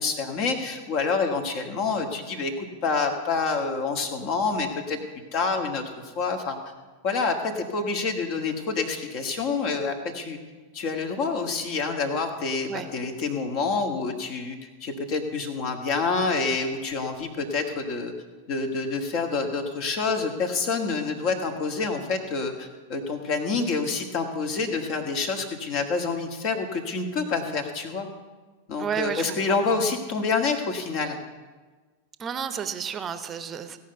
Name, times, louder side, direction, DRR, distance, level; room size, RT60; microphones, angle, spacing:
voice 1, 0.0-5.0 5.3-6.6 7.0-10.4 10.7-18.1 18.5-28.1 28.7-31.2, left 4 dB, 40° left, 5 dB, 1.6 m, -27 dB
voice 2, 28.8-29.8 32.2-33.8, right 7 dB, 25° right, 11 dB, 0.9 m, -32 dB
17.0 x 5.7 x 7.9 m, 1.3 s
figure-of-eight pair, 90°, 0 cm